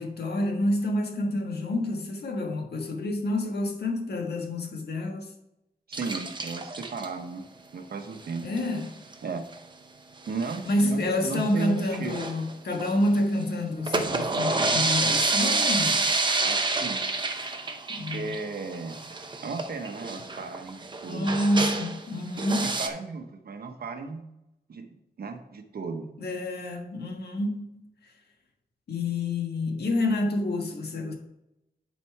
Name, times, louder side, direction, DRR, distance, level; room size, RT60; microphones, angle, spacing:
voice 1, 0.0-5.3 8.4-9.0 10.7-16.0 17.9-18.4 21.1-22.7 26.2-27.8 28.9-31.1, left 1 dB, 80° left, 1.4 m, -28 dB
sound 1, 5.9-7.1 8.3-8.6 8.8-8.9 9.1-9.2 9.5-9.6 10.3-10.9 11.3-13.2 13.7-22.0 22.4-22.9, right 3 dB, 30° right, 0.7 m, -28 dB
voice 2, 5.9-7.4 7.7-8.5 9.2-9.5 10.3-12.1 16.4-17.0 18.1-19.0 19.4-21.3 22.8-24.2 24.7-24.9 25.2-26.1, right 4 dB, 70° right, 1.0 m, -35 dB
10.5 x 4.2 x 4.6 m
wide cardioid pair, 150°, 17 cm